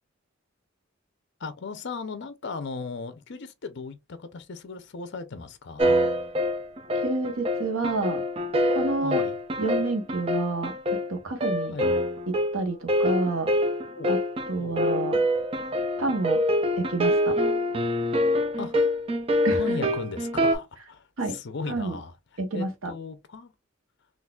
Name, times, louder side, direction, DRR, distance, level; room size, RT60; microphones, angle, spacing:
voice 1, 1.4-6.0 9.0-9.4 11.7-11.9 13.9-14.2 14.6-14.8 18.6-18.8 19.5-22.1 22.5-23.5, left 4 dB, 55° left, 0.5 m, -37 dB
sound 1, 5.8-20.6, left 1 dB, 30° right, 0.4 m, -25 dB
voice 2, 6.9-8.2 8.7-9.2 9.6-11.7 12.5-13.5 14.1-14.2 14.5-15.2 16.0-16.4 16.8-17.4 19.4-19.6 21.2-21.4 21.7-22.0 22.4-22.9, right 3 dB, 80° right, 0.9 m, -29 dB
3.9 x 2.4 x 2.2 m
head